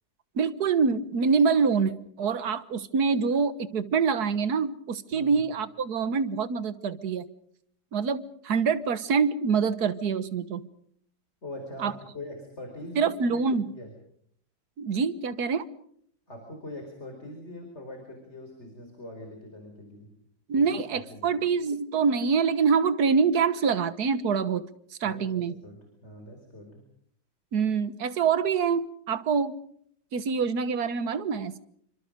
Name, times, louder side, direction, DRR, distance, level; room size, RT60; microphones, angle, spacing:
voice 1, 0.3-7.3 7.9-10.6 11.8-11.9 12.9-13.7 14.8-15.6 20.5-24.6 25.0-25.5 27.5-29.6 30.1-31.6, right 5 dB, 55° right, 14 dB, 1.7 m, -25 dB
voice 2, 5.1-5.4 11.4-13.4 13.7-13.9 16.3-20.1 20.5-20.7 20.9-21.3 25.0-26.8, left 1 dB, 35° left, 4 dB, 4.6 m, -42 dB
28.0 x 25.5 x 5.2 m, 0.66 s
omnidirectional pair, 2.1 m